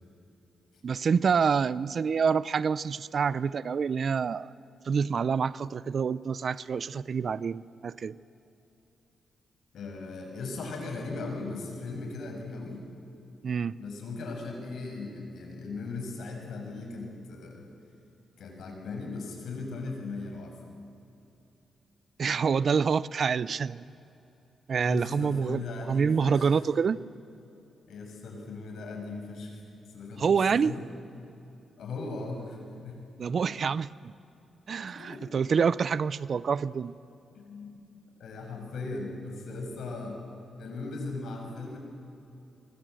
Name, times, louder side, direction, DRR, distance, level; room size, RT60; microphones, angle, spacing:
voice 1, 0.8-4.5 4.8-8.2 13.4-13.8 22.2-23.8 24.7-27.0 30.2-30.7 33.2-34.1 34.7-36.9, right 6 dB, 55° right, 19 dB, 0.5 m, -27 dB
voice 2, 9.7-12.9 13.8-17.6 18.4-20.5 24.8-26.5 27.9-29.6 29.9-30.8 31.8-33.0 35.0-35.2 37.3-37.9 38.2-40.2 40.6-41.8, left 3 dB, 80° left, 2 dB, 6.1 m, -38 dB
24.0 x 23.5 x 7.8 m, 2.8 s
cardioid pair, 85°, 0 cm